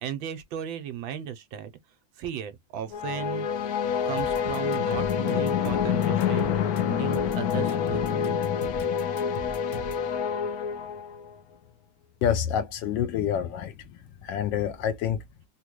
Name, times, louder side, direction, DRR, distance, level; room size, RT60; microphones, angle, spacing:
voice 1, 0.0-1.7 2.2-3.5 4.0-6.6 6.8-8.4, right 9 dB, 75° right, 1.4 m, -35 dB
sound 1, 2.9-11.3, left 8 dB, 90° left, 0.8 m, -27 dB
sound 2, 4.2-10.1, equal, 45° left, 1.1 m, -41 dB
voice 2, 12.2-13.7 14.2-15.2, left 9 dB, 75° left, 1.1 m, -27 dB
3.8 x 2.2 x 3.0 m
omnidirectional pair, 2.3 m